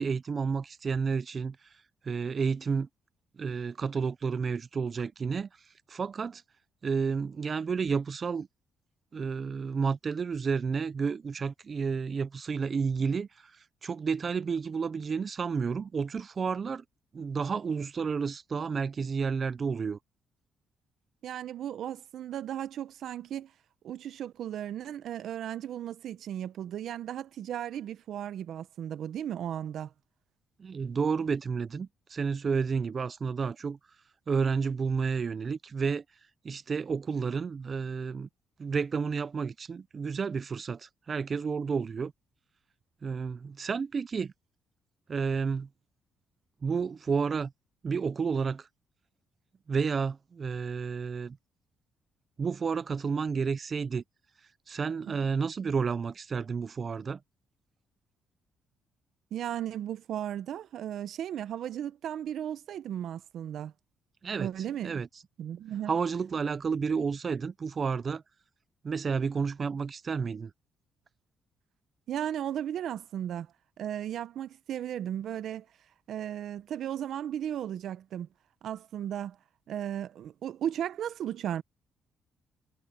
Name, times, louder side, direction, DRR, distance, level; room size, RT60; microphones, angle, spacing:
voice 1, 0.0-1.6 2.0-2.9 3.4-5.5 5.9-6.4 6.8-8.5 9.1-16.8 17.1-20.0 30.6-33.8 34.3-36.0 36.4-38.3 38.6-42.1 43.0-44.3 45.1-45.7 46.6-47.5 47.8-48.7 49.7-51.4 52.4-54.0 54.7-57.2 64.2-64.5 64.8-65.1 65.9-68.2 68.8-70.5, right 5 dB, 40° right, 0.6 m, -31 dB
voice 2, 21.2-23.5 23.8-29.9 55.1-55.2 59.3-63.7 64.4-65.0 65.4-65.9 72.1-73.5 73.8-75.7 76.1-78.3 78.6-79.4 79.7-81.6, right 10 dB, 70° right, 0.8 m, -35 dB
cardioid pair, 90°, 0 cm